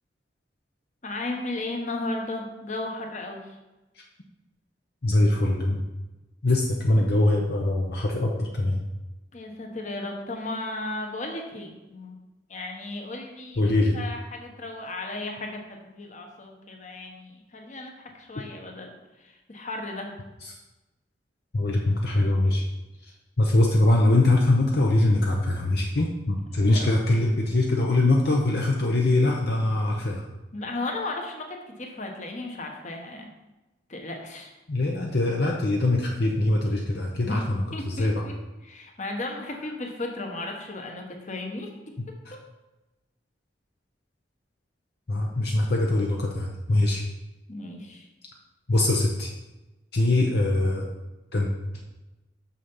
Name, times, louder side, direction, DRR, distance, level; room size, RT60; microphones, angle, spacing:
voice 1, 1.0-3.5 9.3-12.2 12.5-18.9 19.2-20.1 26.7-26.9 30.5-33.3 33.9-34.5 37.2-37.4 37.7-38.3 38.6-41.7 42.3-42.4 47.5-48.1, left 2 dB, 45° left, 2 dB, 1.3 m, -35 dB
voice 2, 5.0-5.8 6.4-8.8 13.6-14.0 20.4-20.6 21.5-22.6 23.0-30.2 34.7-38.2 42.0-42.3 45.1-47.0 48.7-49.3 49.9-50.9 51.3-51.5, left 2 dB, 60° left, -1 dB, 0.9 m, -23 dB
6.7 x 6.3 x 5.5 m, 1.1 s
head